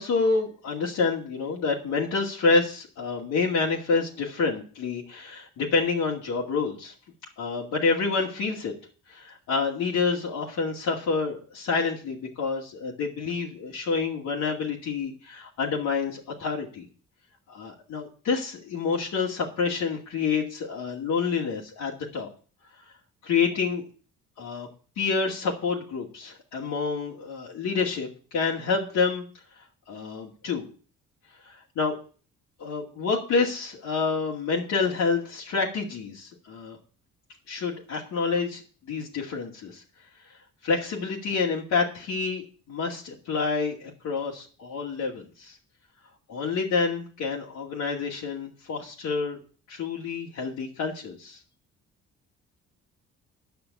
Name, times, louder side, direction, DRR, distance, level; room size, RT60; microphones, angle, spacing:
voice 1, 0.0-6.9 7.4-8.7 9.1-16.9 17.5-22.3 23.2-23.8 24.4-24.7 25.0-29.2 29.9-30.7 31.5-31.9 32.6-36.8 37.5-38.6 38.9-39.8 40.6-45.6 46.3-49.4 49.7-51.4, left 4 dB, 75° left, -4 dB, 2.4 m, -28 dB
10.5 x 6.0 x 8.3 m, 0.39 s
cardioid pair, 90°, 30 cm